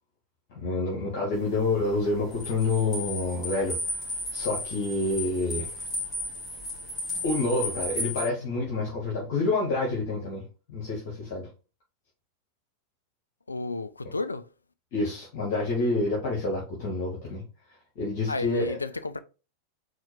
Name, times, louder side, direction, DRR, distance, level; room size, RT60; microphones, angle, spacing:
voice 1, 0.5-3.8 4.3-5.7 7.2-10.4 10.7-11.5 14.9-17.4 17.9-18.8, left 2 dB, 50° left, 1.4 m, -28 dB
sound 1, 1.3-8.2, left 1 dB, 30° left, 2.2 m, -34 dB
voice 2, 13.5-14.4 18.3-19.2, left 3 dB, 80° left, 0.4 m, -32 dB
4.3 x 2.5 x 4.3 m
figure-of-eight pair, 90°, 0 cm